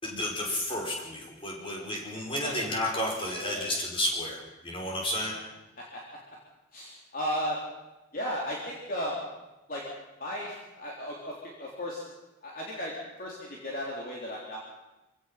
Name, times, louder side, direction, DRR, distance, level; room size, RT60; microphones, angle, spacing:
voice 1, 0.0-5.3, left 1 dB, 25° left, -1 dB, 5.2 m, -32 dB
voice 2, 6.7-7.6 8.1-9.2 9.7-9.8 10.2-12.0 12.4-12.9 13.2-14.6, equal, 40° left, -4 dB, 3.5 m, -35 dB
26.5 x 17.0 x 5.9 m, 1.0 s
head